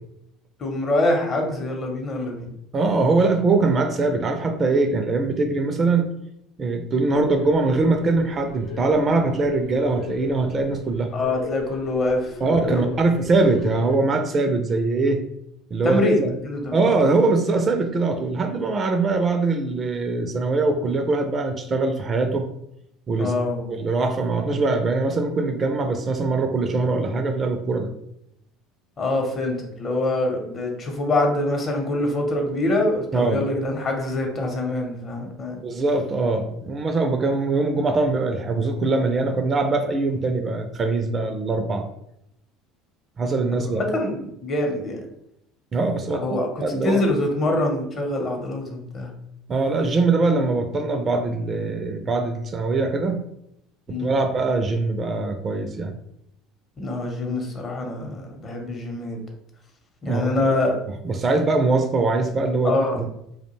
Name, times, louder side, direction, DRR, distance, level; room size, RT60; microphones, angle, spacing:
voice 1, 0.6-2.5 11.1-12.9 15.8-16.8 23.2-23.8 29.0-35.6 43.5-45.0 46.2-46.5 46.8-49.1 53.9-54.1 56.8-59.2 60.0-60.8 62.6-63.1, left 2 dB, 40° left, 2 dB, 0.8 m, -25 dB
voice 2, 2.7-6.1 6.6-11.1 12.4-15.2 15.7-16.3 16.7-22.5 23.1-23.3 23.7-27.9 33.1-33.5 35.6-41.8 43.2-43.8 45.7-46.3 46.6-47.0 49.5-53.2 53.9-55.9 60.1-60.5 61.0-62.7, right 3 dB, 35° right, 6 dB, 0.4 m, -22 dB
sound 1, 7.1-14.0, left 4 dB, 65° left, 0.4 m, -38 dB
2.3 x 2.1 x 3.1 m, 0.78 s
hypercardioid pair, 75°, 0 cm